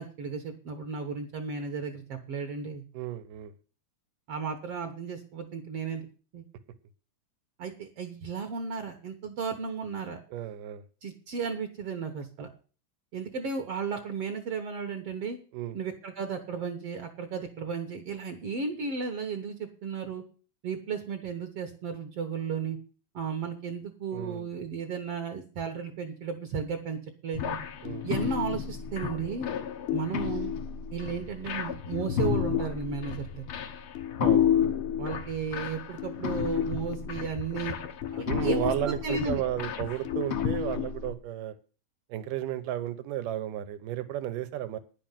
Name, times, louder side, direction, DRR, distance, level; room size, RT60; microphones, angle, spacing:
voice 1, 0.0-2.8 4.3-6.1 6.3-6.4 7.6-10.2 11.0-12.5 13.1-15.4 15.7-20.2 20.6-22.8 23.1-27.6 28.0-29.5 29.9-30.5 30.9-33.4 35.0-37.8 38.1-39.4, right 5 dB, 55° right, 1.9 m, -34 dB
voice 2, 2.9-3.5 10.3-10.8 15.5-15.8 24.1-24.5 27.8-28.1 34.2-34.5 38.2-41.6 42.1-44.8, right 12 dB, 80° right, 2.6 m, -33 dB
sound 1, 27.3-41.1, left 9 dB, 65° left, 1.4 m, -31 dB
10.5 x 6.9 x 9.1 m
omnidirectional pair, 3.8 m